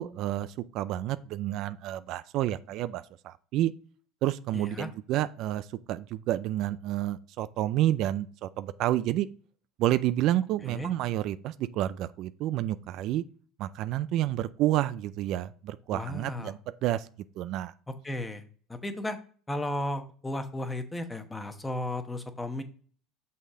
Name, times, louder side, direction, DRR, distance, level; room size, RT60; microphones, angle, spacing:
voice 1, 0.0-3.7 4.2-9.3 9.8-13.2 13.6-17.1 17.4-17.7, right 13 dB, 60° right, 14 dB, 0.4 m, -29 dB
voice 2, 4.5-4.9 10.6-10.9 15.9-16.5 18.0-18.4 18.7-19.2 19.5-22.6, left 1 dB, 10° left, 8 dB, 1.0 m, -34 dB
6.4 x 5.6 x 3.7 m, 0.43 s
supercardioid pair, 110°, 0 cm